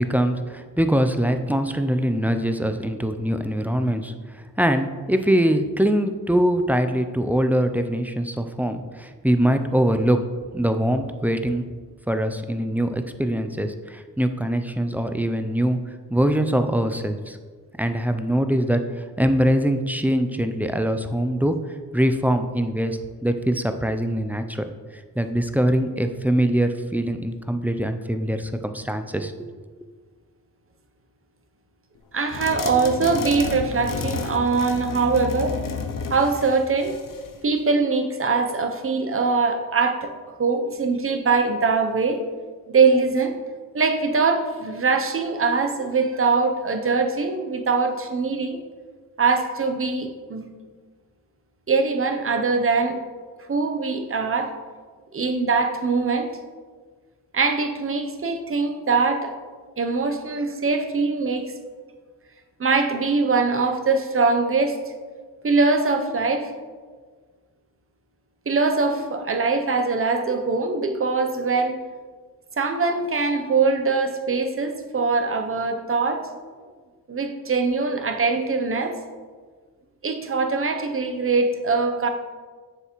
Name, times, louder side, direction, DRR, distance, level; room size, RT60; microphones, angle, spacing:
voice 1, 0.0-10.2 10.5-11.7 12.1-15.8 16.1-17.4 17.8-21.6 21.9-24.7 25.2-29.5, equal, 5° right, 8 dB, 0.3 m, -23 dB
voice 2, 32.1-35.6 36.1-36.9 37.4-40.1 40.4-42.2 42.7-43.3 43.7-48.6 49.2-50.5 51.7-53.0 53.5-54.5 55.1-56.3 57.3-59.3 59.8-61.5 62.6-64.8 65.4-66.5 68.5-71.8 72.6-76.2 77.1-79.0 80.0-82.1, right 4 dB, 35° right, 6 dB, 0.7 m, -22 dB
sound 1, 32.3-37.4, left 5 dB, 65° left, 0.7 m, -31 dB
7.0 x 6.6 x 3.0 m, 1.5 s
wide cardioid pair, 110°, 36 cm